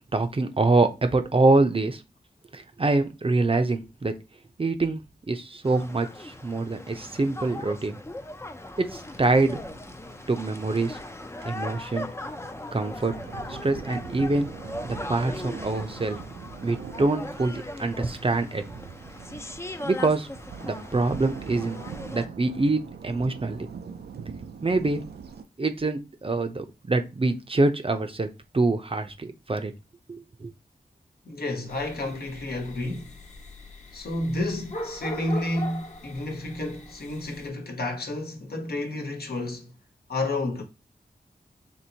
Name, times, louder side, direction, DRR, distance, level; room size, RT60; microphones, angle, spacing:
voice 1, 0.1-2.0 2.5-4.1 4.6-5.0 5.3-8.0 8.8-9.6 10.3-11.0 11.4-12.1 12.7-13.1 13.5-14.5 14.8-16.2 16.6-18.6 19.8-20.3 20.6-21.8 22.1-23.7 24.6-25.0 25.6-28.3 28.5-29.7 30.1-30.5, right 3 dB, 35° right, 0.6 m, -25 dB
sound 1, 5.6-22.3, left 1 dB, 15° left, 0.5 m, -39 dB
sound 2, 9.0-25.4, right 6 dB, 80° right, 0.5 m, -43 dB
voice 2, 31.2-33.1 33.9-39.7 40.1-40.6, left 1 dB, 70° left, 1.1 m, -30 dB
sound 3, 31.7-37.5, left 1 dB, 45° left, 1.1 m, -40 dB
4.4 x 3.0 x 2.8 m
cardioid pair, 55°, 17 cm